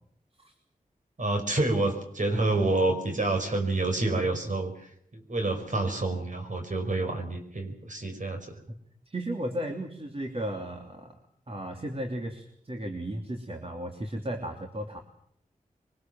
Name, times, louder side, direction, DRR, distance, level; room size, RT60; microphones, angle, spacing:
voice 1, 1.2-8.6, right 2 dB, 60° right, 4 dB, 5.4 m, -28 dB
voice 2, 9.1-11.2 11.5-15.0, right 1 dB, 40° right, 3 dB, 3.1 m, -35 dB
23.5 x 21.5 x 7.6 m, 0.68 s
cardioid pair, 55°, 14 cm